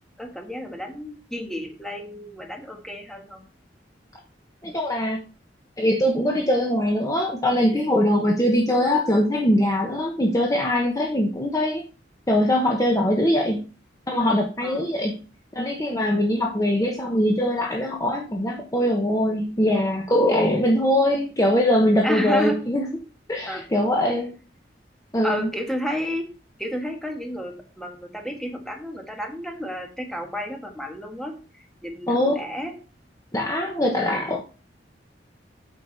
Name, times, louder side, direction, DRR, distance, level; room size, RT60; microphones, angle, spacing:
voice 1, 0.2-3.4 14.6-14.9 22.0-22.6 23.5-23.7 25.2-26.3 26.6-32.8, equal, ahead, 2 dB, 1.6 m, -31 dB
voice 2, 4.6-5.2 5.8-11.8 12.3-13.7 14.1-15.2 15.5-22.8 23.3-24.3 25.1-25.5 32.1-32.4 33.3-34.4, left 1 dB, 20° left, 1 dB, 1.1 m, -22 dB
8.5 x 6.6 x 4.1 m, 0.34 s
head